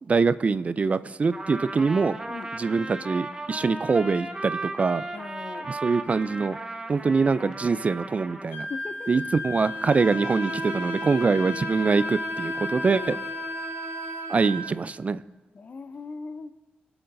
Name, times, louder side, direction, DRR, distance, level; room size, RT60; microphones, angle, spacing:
voice 1, 0.0-2.2 2.5-5.0 5.6-6.6 6.9-8.7 9.1-13.1 14.3-15.2, right 4 dB, 40° right, 15 dB, 0.3 m, -24 dB
Trumpet, 1.3-8.5, right 2 dB, 20° right, 1.1 m, -36 dB
voice 2, 5.1-5.7 8.7-9.2 12.9-13.2 15.5-16.5, left 4 dB, 45° left, 13 dB, 0.5 m, -39 dB
Wind instrument woodwind instrument, 8.5-14.7, left 3 dB, 80° left, 1.8 m, -35 dB
Bowed string instrument, 9.5-14.7, right 3 dB, 75° right, 2.2 m, -36 dB
21.5 x 7.9 x 2.6 m, 1.2 s
cardioid pair, 70°, 4 cm